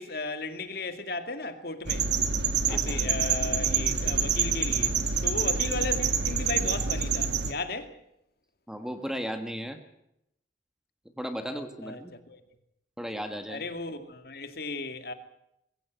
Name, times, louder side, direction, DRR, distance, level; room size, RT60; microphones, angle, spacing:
voice 1, 0.0-2.1 2.7-5.0 5.2-8.0 11.4-12.4 13.5-15.1, left 3 dB, 55° left, 2.2 m, -35 dB
sound 1, 1.8-7.5, right 6 dB, 70° right, 1.9 m, -27 dB
voice 2, 2.7-3.0 8.7-9.8 11.2-12.1 13.0-13.6, equal, 5° right, 1.5 m, -35 dB
21.5 x 16.5 x 8.1 m
head